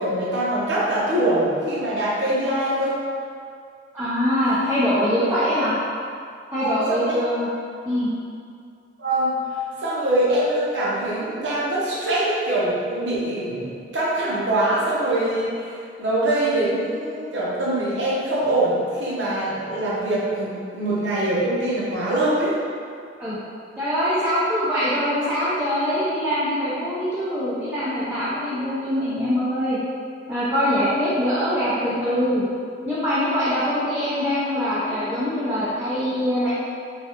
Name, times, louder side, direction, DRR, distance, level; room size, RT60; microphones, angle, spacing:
voice 1, 0.0-3.0 6.6-7.2 9.0-9.3 9.8-15.7 16.0-22.6, right 1 dB, 85° right, -7 dB, 0.8 m, -23 dB
voice 2, 3.9-5.7 6.5-7.5 7.8-8.1 23.2-23.4 23.8-29.8 30.3-32.4 32.8-36.5, equal, 10° right, -12 dB, 0.4 m, -23 dB
3.2 x 2.3 x 2.8 m, 2.3 s
head